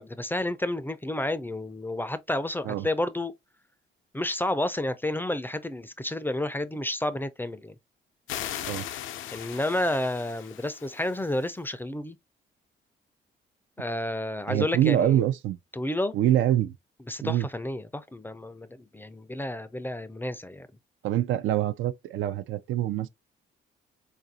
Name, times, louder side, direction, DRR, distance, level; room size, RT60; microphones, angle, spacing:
voice 1, 0.0-3.3 4.1-7.7 9.3-12.2 13.8-15.2 15.7-16.1 17.1-20.7, left 1 dB, 10° left, 0.4 m, -30 dB
sound 1, 8.3-11.6, left 11 dB, 85° left, 0.5 m, -38 dB
voice 2, 14.5-15.6 16.1-16.7 17.2-17.5 21.0-23.1, right 12 dB, 80° right, 0.4 m, -25 dB
4.0 x 2.5 x 2.7 m
cardioid pair, 90°, 20 cm